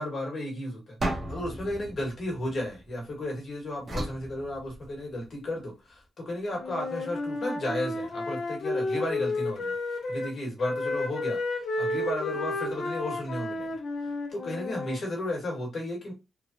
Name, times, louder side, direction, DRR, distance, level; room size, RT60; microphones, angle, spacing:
voice 1, 0.0-11.4 11.8-13.8 14.3-16.1, left 1 dB, 40° left, 1.2 m, -34 dB
sound 1, 1.0-3.2 3.9-5.2, right 1 dB, 35° right, 0.7 m, -35 dB
Wind instrument woodwind instrument, 6.6-10.3 10.6-15.0, left 2 dB, 65° left, 0.6 m, -32 dB
3.1 x 2.1 x 2.5 m
wide cardioid pair, 170°, 0 cm